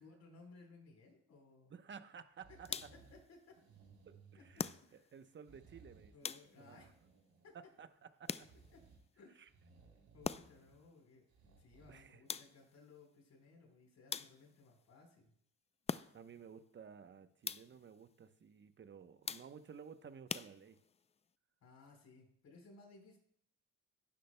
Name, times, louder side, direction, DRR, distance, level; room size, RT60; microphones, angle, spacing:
voice 1, 0.0-1.7 2.7-3.5 4.3-5.1 6.1-6.9 7.4-7.5 8.7-8.8 9.2-9.5 10.1-15.3 21.6-23.2, left 3 dB, 60° left, 2 dB, 4.2 m, -61 dB
voice 2, 1.7-2.9 4.1-6.1 6.6-6.9 7.5-8.5 9.4-9.5 11.9-12.2 16.1-20.8, right 7 dB, 40° right, 10 dB, 0.9 m, -55 dB
sound 1, 2.4-3.2 3.5-4.9 5.4-6.2 6.4-7.8 8.4-9.0 9.5-10.8 11.3-12.0 12.5-12.6, right 4 dB, 70° right, 3.5 m, -63 dB
sound 2, 2.6-3.2 4.6-5.2 6.2-6.8 8.3-8.9 10.2-10.7 12.3-12.8 14.1-14.7 15.9-16.4 17.4-17.9 19.3-19.8 20.3-21.0, left 6 dB, 20° left, 0.3 m, -44 dB
17.5 x 10.0 x 2.2 m, 0.67 s
cardioid pair, 90°, 30 cm